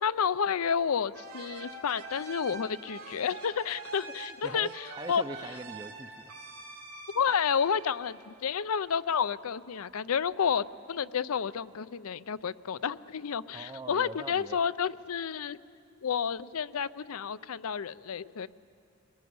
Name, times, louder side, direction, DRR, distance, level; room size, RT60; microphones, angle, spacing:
voice 1, 0.0-5.2 7.1-15.6 16.0-18.5, left 7 dB, 80° left, 17 dB, 0.5 m, -30 dB
sound 1, 1.1-8.6, right 3 dB, 75° right, 3.3 m, -45 dB
voice 2, 5.0-6.3 13.5-14.6, right 2 dB, 20° right, 11 dB, 0.5 m, -42 dB
23.5 x 19.5 x 9.5 m, 2.7 s
head